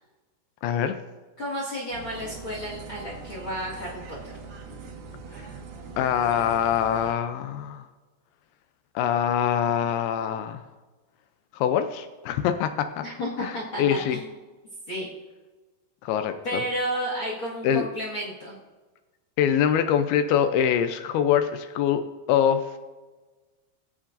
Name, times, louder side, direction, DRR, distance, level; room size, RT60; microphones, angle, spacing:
voice 1, 0.6-0.9 6.0-7.8 9.0-10.6 11.5-13.0 13.4-14.2 16.0-16.6 17.6-17.8 19.4-22.6, left 9 dB, 85° left, 9 dB, 2.2 m, -24 dB
voice 2, 1.4-4.0 13.0-14.2 14.9-15.1 16.4-18.5, equal, 50° left, -4 dB, 1.6 m, -32 dB
sound 1, 1.9-7.1, right 4 dB, 65° right, 2.4 m, -41 dB
21.0 x 7.2 x 2.6 m, 1.2 s
omnidirectional pair, 5.1 m